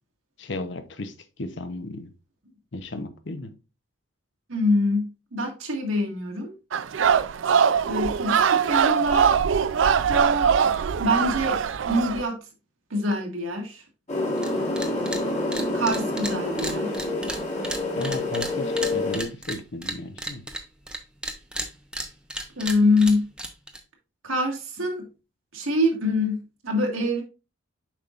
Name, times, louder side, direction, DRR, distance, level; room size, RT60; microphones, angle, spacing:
voice 1, 0.4-2.1 2.7-3.5 18.0-20.4, left 2 dB, 60° left, 0.8 m, -34 dB
voice 2, 4.5-6.5 7.8-9.3 10.1-10.7 11.0-12.4 12.9-13.8 15.7-17.0 22.6-23.3 24.2-25.1 25.5-27.2, left 1 dB, 85° right, 1.8 m, -25 dB
sound 1, 6.7-12.2, right 7 dB, 70° right, 0.4 m, -22 dB
sound 2, 14.1-19.2, left 2 dB, 35° left, 1.5 m, -27 dB
sound 3, 14.4-14.5 14.8-15.2 15.5-21.0 21.2-23.8, right 1 dB, 5° right, 0.6 m, -33 dB
7.3 x 5.4 x 2.4 m
head